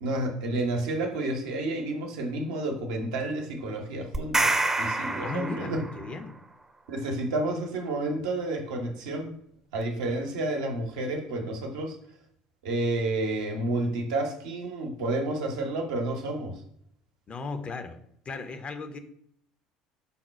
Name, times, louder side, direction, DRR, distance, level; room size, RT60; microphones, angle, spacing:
voice 1, 0.0-5.8 6.9-9.3 9.7-12.0 12.6-16.6, right 2 dB, 70° right, 2 dB, 0.7 m, -30 dB
sound 1, 4.1-6.1, right 2 dB, 15° right, 0.6 m, -27 dB
voice 2, 5.2-6.4 17.3-18.0 18.3-19.0, left 3 dB, 35° left, 8 dB, 0.6 m, -36 dB
5.5 x 2.2 x 4.1 m, 0.68 s
hypercardioid pair, 65°, 3 cm